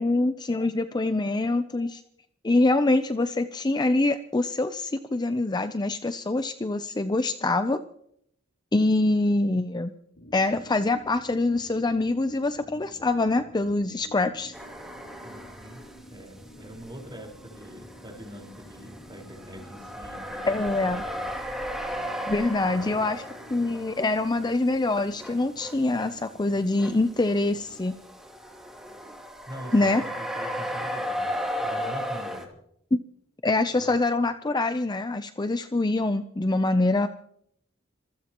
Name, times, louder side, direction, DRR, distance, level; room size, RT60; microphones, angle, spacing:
voice 1, 0.0-2.0 2.4-7.8 8.7-9.9 10.3-14.5 20.5-21.0 22.2-23.2 23.5-28.0 29.7-30.0 32.9-33.0 33.4-37.1, left 2 dB, 20° left, 10 dB, 0.5 m, -25 dB
sound 1, 10.1-27.8, equal, 65° left, 1.7 m, -51 dB
sound 2, 14.5-16.1 16.4-32.5, equal, ahead, 2.7 m, -36 dB
voice 2, 15.2-20.5 20.8-21.3 22.6-23.0 29.5-32.5 33.6-34.0, equal, 25° right, 0 dB, 4.6 m, -44 dB
26.5 x 15.5 x 3.0 m, 0.72 s
head